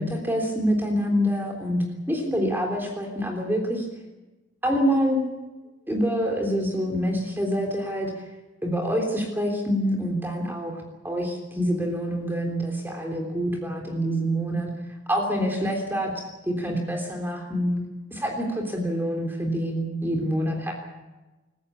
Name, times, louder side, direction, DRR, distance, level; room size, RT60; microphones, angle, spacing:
voice 1, 0.0-3.9 4.6-5.2 5.9-8.1 8.6-10.8 11.0-14.7 15.1-17.8 18.1-20.7, equal, 10° right, 1 dB, 3.4 m, -26 dB
27.5 x 15.0 x 8.5 m, 1.1 s
head